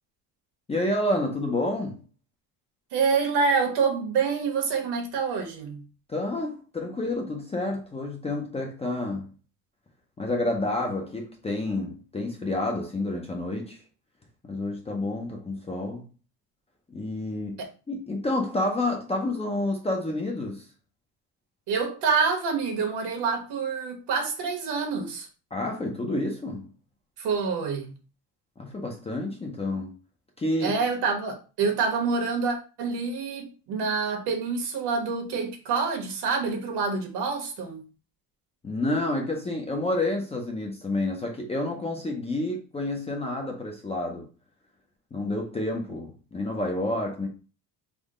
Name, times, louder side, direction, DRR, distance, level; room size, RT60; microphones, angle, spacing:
voice 1, 0.7-2.0 6.1-9.3 10.2-13.8 14.4-16.1 16.9-20.7 25.5-26.7 28.6-29.9 30.4-30.8 38.6-44.3 45.1-47.3, left 2 dB, 15° left, 0.4 m, -29 dB
voice 2, 2.9-5.8 17.6-17.7 21.7-25.3 27.2-27.9 30.6-37.8, right 5 dB, 65° right, 1.2 m, -27 dB
3.6 x 2.1 x 3.6 m
cardioid pair, 145°, 42 cm